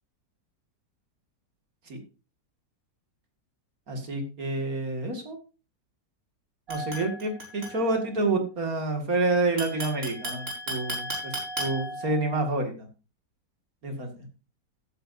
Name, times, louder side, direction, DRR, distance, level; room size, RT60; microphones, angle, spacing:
voice 1, 3.9-5.4 6.7-11.3 11.6-12.9 13.8-14.3, right 2 dB, 55° right, 4 dB, 2.6 m, -28 dB
sound 1, 6.7-8.2 9.6-12.6, equal, 35° right, 4.2 m, -35 dB
15.5 x 9.2 x 2.7 m, 0.33 s
omnidirectional pair, 1.8 m